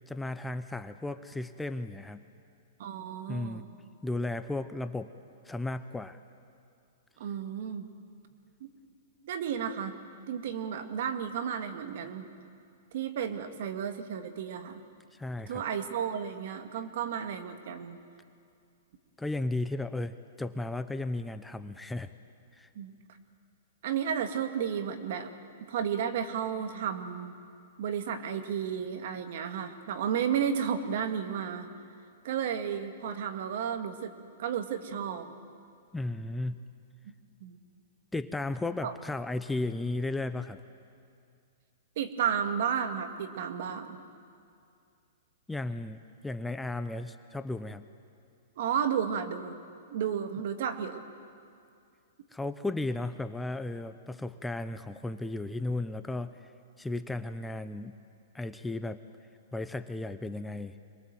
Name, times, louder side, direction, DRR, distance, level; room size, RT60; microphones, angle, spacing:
voice 1, 0.1-2.2 3.3-3.7 4.0-5.1 5.4-6.2 15.1-15.6 19.2-22.1 22.5-22.7 35.9-36.7 38.1-40.6 45.5-47.8 52.3-56.5 56.8-58.0 58.3-59.0 59.5-60.8, left 2 dB, 5° left, 10 dB, 0.7 m, -35 dB
voice 2, 2.8-3.6 7.2-7.9 8.6-8.7 9.2-9.9 10.3-12.3 12.9-14.8 15.5-18.0 22.8-22.9 23.8-25.3 25.7-27.3 27.8-31.7 32.2-34.1 34.4-35.3 37.4-37.6 38.8-38.9 42.0-44.0 48.6-49.6 49.9-51.0, right 8 dB, 60° right, 7 dB, 2.0 m, -32 dB
26.5 x 21.5 x 7.7 m, 2.4 s
hypercardioid pair, 125°, 0 cm